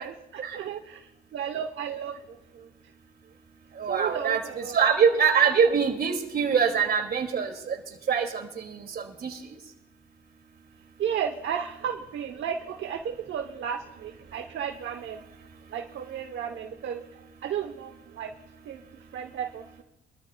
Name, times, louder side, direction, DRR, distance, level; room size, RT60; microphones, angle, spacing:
voice 1, 0.0-2.7 3.9-4.9 11.0-15.2 15.7-18.3 18.6-18.8 19.1-19.8, right 8 dB, 70° right, 4 dB, 1.0 m, -34 dB
voice 2, 3.8-4.4 4.7-7.8 8.1-9.4, right 6 dB, 50° right, 4 dB, 2.4 m, -24 dB
24.5 x 13.5 x 2.3 m, 0.95 s
cardioid pair, 90°, 20 cm